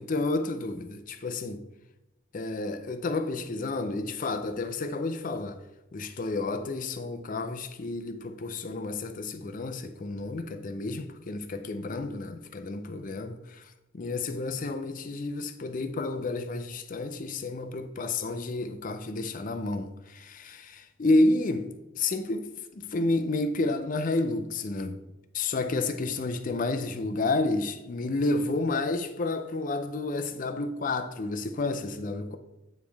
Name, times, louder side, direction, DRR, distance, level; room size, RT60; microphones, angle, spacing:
voice 1, 0.0-1.6 2.3-5.6 5.9-22.5 22.7-25.0 25.3-32.4, left 2 dB, 40° left, 0.5 m, -30 dB
9.1 x 3.2 x 3.4 m
head